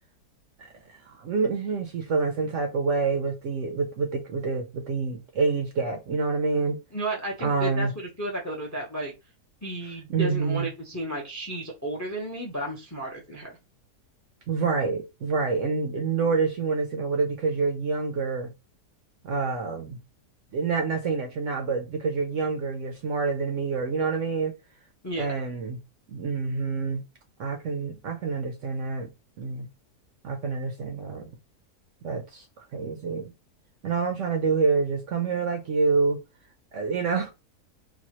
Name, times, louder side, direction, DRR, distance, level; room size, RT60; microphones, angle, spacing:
voice 1, 1.1-6.8 7.4-7.9 10.1-10.7 14.5-18.5 19.2-20.0 20.5-24.5 25.2-25.8 26.1-27.0 27.4-29.1 29.4-29.7 30.2-31.3 32.0-33.3 33.8-36.2 36.7-37.3, right 4 dB, 65° right, 0.8 m, -27 dB
voice 2, 6.9-9.1 9.6-13.5 25.0-25.3, right 1 dB, 20° left, 0.5 m, -33 dB
4.0 x 2.2 x 2.9 m
omnidirectional pair, 1.7 m